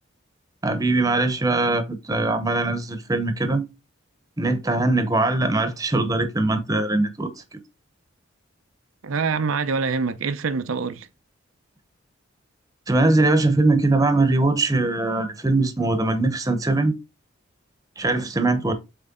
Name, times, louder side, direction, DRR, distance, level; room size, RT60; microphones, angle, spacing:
voice 1, 0.6-3.6 4.4-7.3 12.9-16.9 18.0-18.7, right 2 dB, 15° right, 0.9 m, -21 dB
voice 2, 9.0-11.1, right 5 dB, 85° right, 0.6 m, -25 dB
7.8 x 3.3 x 3.7 m
head